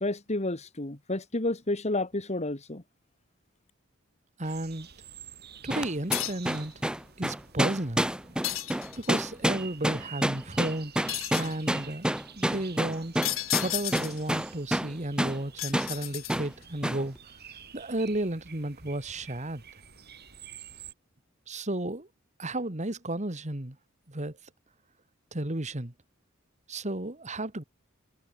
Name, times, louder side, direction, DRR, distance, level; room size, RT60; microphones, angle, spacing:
voice 1, 0.0-2.8, left 2 dB, 30° left, 1.9 m, -30 dB
voice 2, 4.4-4.9 5.6-6.7 7.2-8.4 9.0-10.9 11.3-13.2 13.6-17.2 17.7-19.6 21.5-22.1 22.4-23.8 24.1-24.4 25.3-25.9 26.7-27.6, right 1 dB, 35° right, 2.2 m, -33 dB
sound 1, 4.4-20.9, right 8 dB, 50° right, 5.6 m, -49 dB
sound 2, 5.7-14.9 15.2-15.4 15.7-15.9 16.3-16.5 16.8-17.0, equal, 5° right, 1.1 m, -28 dB
sound 3, 6.1-6.6 8.4-9.2 11.1-11.6 13.2-14.3 15.6-16.6, left 15 dB, 70° left, 3.6 m, -33 dB
head